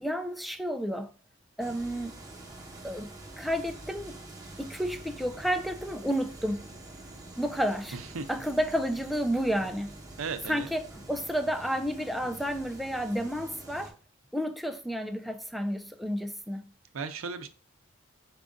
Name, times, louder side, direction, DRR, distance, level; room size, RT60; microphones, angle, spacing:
voice 1, 0.0-1.1 1.6-2.1 2.8-3.1 3.4-4.2 4.6-6.6 7.4-8.0 8.3-9.9 10.5-14.0 14.3-16.7, equal, ahead, 0.4 m, -31 dB
sound 1, 1.6-13.9, right 2 dB, 20° right, 1.0 m, -46 dB
voice 2, 7.9-8.4 10.2-10.7 16.9-17.5, right 5 dB, 85° right, 0.5 m, -36 dB
4.8 x 2.5 x 3.6 m
head